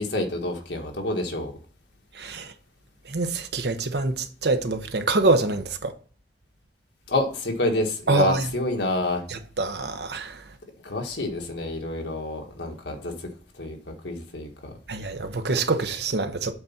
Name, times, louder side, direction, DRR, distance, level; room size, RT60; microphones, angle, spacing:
voice 1, 0.0-1.6 7.1-9.2 10.8-13.1 13.6-13.8 14.0-14.7, left 1 dB, 75° left, 1.7 m, -28 dB
voice 2, 2.1-2.5 3.0-5.9 8.1-8.5 9.3-10.5 14.9-16.5, right 3 dB, 65° right, 0.9 m, -25 dB
8.0 x 4.1 x 5.8 m
head